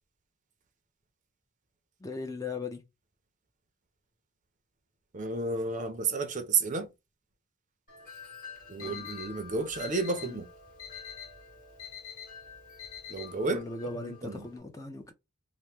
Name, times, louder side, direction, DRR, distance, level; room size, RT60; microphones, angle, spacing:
voice 1, 2.0-2.8 8.8-9.1 10.2-10.4 13.5-15.1, left 3 dB, 15° left, 0.4 m, -39 dB
voice 2, 5.1-6.9 8.7-10.5 13.1-13.6 13.9-14.5, right 4 dB, 35° right, 0.5 m, -31 dB
Wind chime, 7.9-14.6, left 5 dB, 40° left, 1.5 m, -49 dB
Alarm, 8.6-13.6, left 9 dB, 70° left, 1.0 m, -46 dB
2.9 x 2.1 x 3.3 m
head